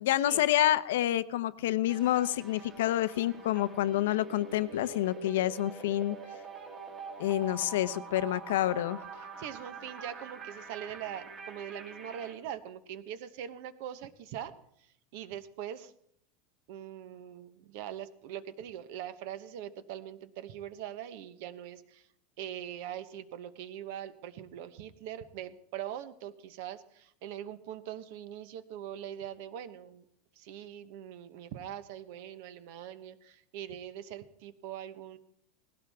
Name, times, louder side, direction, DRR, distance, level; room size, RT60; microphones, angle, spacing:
voice 1, 0.0-6.2 7.2-9.0, left 13 dB, 80° left, 15 dB, 0.7 m, -28 dB
sound 1, 1.9-12.3, right 4 dB, 20° right, 1.7 m, -45 dB
voice 2, 9.2-14.5 15.1-15.9 16.7-22.0 22.4-30.0 30.4-35.2, right 10 dB, 50° right, 13 dB, 0.9 m, -42 dB
19.0 x 16.5 x 3.5 m, 0.71 s
supercardioid pair, 175°, 0 cm